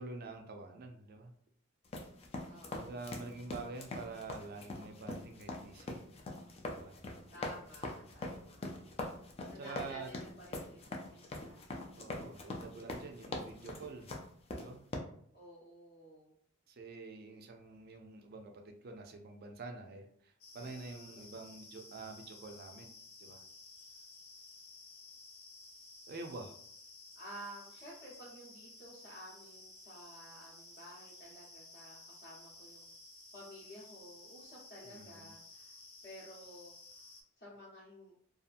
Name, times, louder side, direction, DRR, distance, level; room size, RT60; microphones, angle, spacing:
voice 1, 0.0-1.3 2.7-6.0 6.7-7.0 9.5-10.1 12.0-14.1 14.6-14.9 16.7-22.9 23.2-23.4 26.1-26.5 34.8-35.3, right 3 dB, 45° right, 4 dB, 0.4 m, -47 dB
sound 1, 1.8-15.0, left 2 dB, 30° left, 0.3 m, -43 dB
voice 2, 2.5-3.1 7.3-8.7 9.5-11.6 15.3-16.3 20.5-21.3 27.1-32.9 33.3-37.1 37.4-38.1, equal, 45° left, -8 dB, 0.7 m, -53 dB
sound 2, 20.4-37.2, left 2 dB, 90° left, 0.6 m, -55 dB
2.7 x 2.4 x 2.5 m, 0.65 s
head